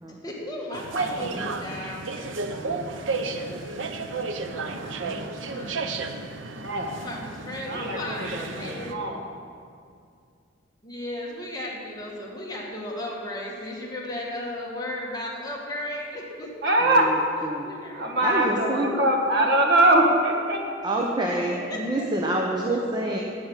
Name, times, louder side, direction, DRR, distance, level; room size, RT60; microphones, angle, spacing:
voice 1, 0.1-5.8 7.0-9.0 10.8-16.8 17.6-18.3 19.2-19.4 21.3-22.1 22.4-22.8, left 1 dB, 20° left, -3 dB, 1.9 m, -36 dB
sound 1, 0.7-8.9, right 3 dB, 85° right, 0.8 m, -32 dB
voice 2, 4.9-5.7 16.8-17.1 17.4-17.7 18.2-18.9 20.8-23.2, right 1 dB, 20° right, -1 dB, 0.9 m, -28 dB
voice 3, 6.6-6.9 7.7-9.2 16.6-17.1 17.9-20.6, right 1 dB, 60° right, 1 dB, 1.6 m, -22 dB
9.5 x 8.6 x 8.4 m, 2.3 s
head